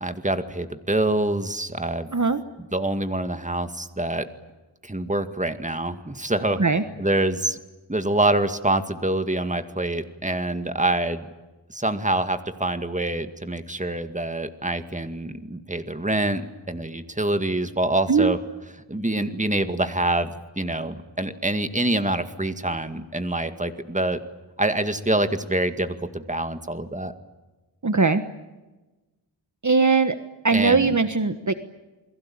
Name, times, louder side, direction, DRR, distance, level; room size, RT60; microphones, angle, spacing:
voice 1, 0.0-2.1 2.7-4.3 4.8-6.6 7.0-7.6 7.9-11.3 11.7-16.4 16.7-18.4 18.9-24.2 24.6-27.1 30.5-30.9, right 1 dB, 15° right, 9 dB, 2.1 m, -25 dB
voice 2, 27.8-28.2 29.6-30.2 30.4-31.5, right 4 dB, 40° right, 10 dB, 1.3 m, -20 dB
29.0 x 22.0 x 8.8 m, 1.1 s
wide cardioid pair, 70°, 44 cm